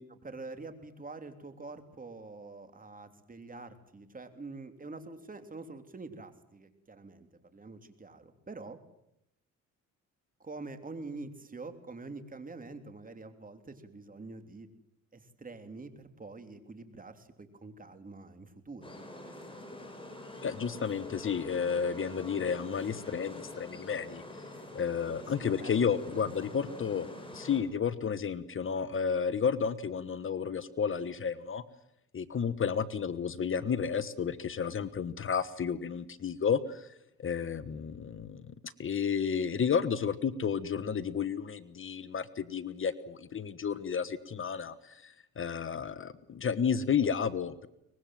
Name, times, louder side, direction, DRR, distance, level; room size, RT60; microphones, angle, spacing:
voice 1, 0.2-8.8 10.4-14.7 15.1-18.9 25.6-25.7, right 3 dB, 30° right, 8 dB, 3.3 m, -46 dB
sound 1, 18.8-27.6, left 1 dB, 15° left, 7.1 m, -45 dB
voice 2, 20.4-24.2 24.7-27.1 27.3-31.6 32.1-36.9 37.2-47.7, left 6 dB, 45° left, 15 dB, 1.2 m, -32 dB
24.0 x 21.0 x 7.6 m, 0.80 s
cardioid pair, 90°, 30 cm